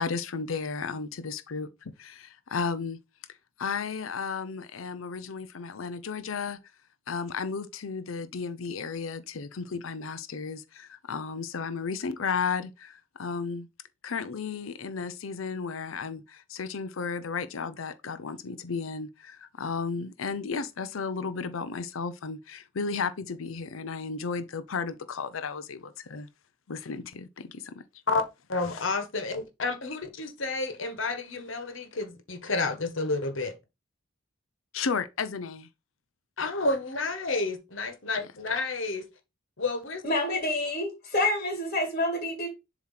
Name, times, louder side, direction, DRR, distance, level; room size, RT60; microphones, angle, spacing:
voice 1, 0.0-3.0 3.6-6.6 7.1-13.7 14.0-26.3 26.7-27.8 28.7-28.8 34.7-35.7, left 5 dB, 85° left, 0.6 m, -34 dB
voice 2, 28.5-33.5 36.4-39.0 39.6-40.0, left 3 dB, 70° left, 1.4 m, -30 dB
voice 3, 40.0-42.5, left 1 dB, 40° left, 1.9 m, -28 dB
7.3 x 3.1 x 5.6 m
head